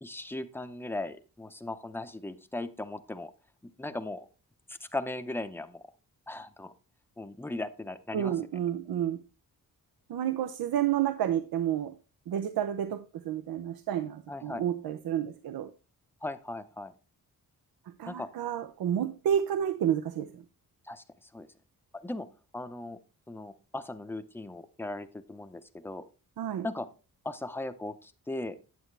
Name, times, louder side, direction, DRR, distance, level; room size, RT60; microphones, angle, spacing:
voice 1, 0.0-3.3 3.8-4.3 4.9-5.8 6.3-6.7 7.2-8.3 14.3-14.6 16.2-16.9 18.1-18.3 20.9-21.0 21.3-21.5 22.0-22.3 22.5-23.0 23.3-26.0 26.6-26.9 27.2-28.6, left 2 dB, 5° left, 0.6 m, -38 dB
voice 2, 8.1-9.2 10.1-11.9 12.3-15.7 18.0-20.4 26.4-26.7, right 10 dB, 80° right, 0.6 m, -30 dB
9.4 x 7.9 x 3.2 m
wide cardioid pair, 120°, 36 cm